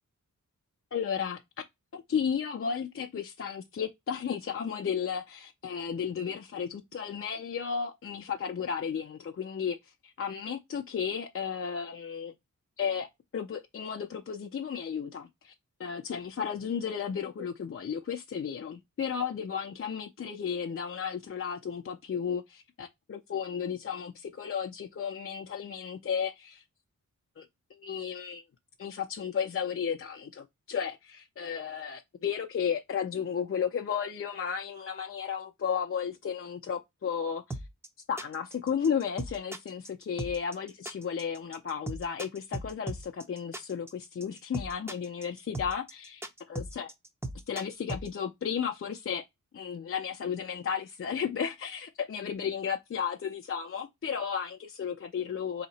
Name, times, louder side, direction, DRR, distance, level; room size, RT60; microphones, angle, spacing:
voice 1, 0.9-1.4 1.9-9.8 10.0-12.3 12.8-15.5 15.8-26.6 27.4-27.5 27.7-28.4 28.8-37.6 38.1-46.2 46.5-46.9 47.5-49.2 49.5-55.7, left 7 dB, 45° left, 0.5 m, -34 dB
sound 1, 37.5-48.1, right 2 dB, 10° right, 0.7 m, -38 dB
4.1 x 2.8 x 4.0 m
wide cardioid pair, 145°, 32 cm